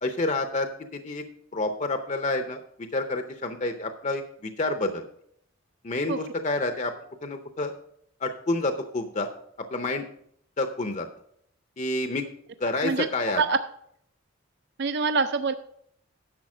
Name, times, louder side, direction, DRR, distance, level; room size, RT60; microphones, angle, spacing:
voice 1, 0.0-1.2 1.5-5.1 5.8-6.9 7.2-7.7 8.2-9.3 9.7-10.0 10.6-11.1 11.8-12.2 12.6-13.4, left 2 dB, 35° left, 7 dB, 0.6 m, -28 dB
voice 2, 14.8-15.5, right 4 dB, 55° right, 10 dB, 0.4 m, -24 dB
10.5 x 6.8 x 4.9 m, 0.69 s
head